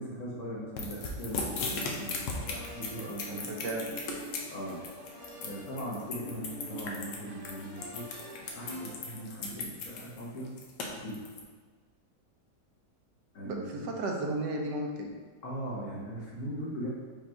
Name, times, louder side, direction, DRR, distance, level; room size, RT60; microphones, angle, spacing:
voice 1, 0.0-3.5 4.5-4.8 5.3-8.1 8.5-10.5 11.0-11.2 13.3-13.9 15.4-16.9, equal, 55° left, -5 dB, 1.2 m, -39 dB
sound 1, 0.8-11.4, left 4 dB, 80° left, 1.3 m, -37 dB
sound 2, 1.0-9.3, right 1 dB, 40° right, 0.8 m, -46 dB
voice 2, 3.5-3.9 13.4-15.1, right 2 dB, 80° right, 1 dB, 1.3 m, -34 dB
5.2 x 2.4 x 4.3 m, 1.4 s
omnidirectional pair, 1.9 m